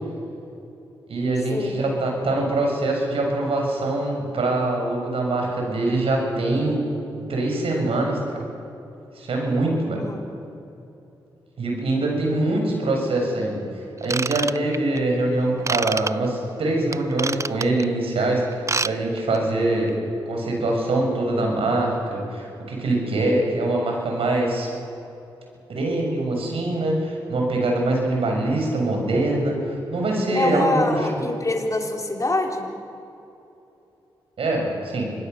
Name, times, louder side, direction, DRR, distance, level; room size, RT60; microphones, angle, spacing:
voice 1, 1.1-6.8 7.1-8.4 9.1-10.0 11.6-13.6 14.0-18.4 18.8-19.9 20.3-24.7 25.7-29.6 29.9-31.2 34.4-35.1, right 2 dB, 75° right, 0 dB, 6.7 m, -23 dB
voice 2, 10.0-10.3 30.3-32.7, left 2 dB, 35° left, 1 dB, 4.2 m, -25 dB
Ratchet pawl / Tools, 14.0-15.0 15.6-16.1 16.9-17.8 18.5-18.9 19.2-19.4 19.9-20.0, right 4 dB, 30° right, 0.5 m, -26 dB
26.0 x 20.0 x 6.8 m, 2.9 s
supercardioid pair, 45°, 10 cm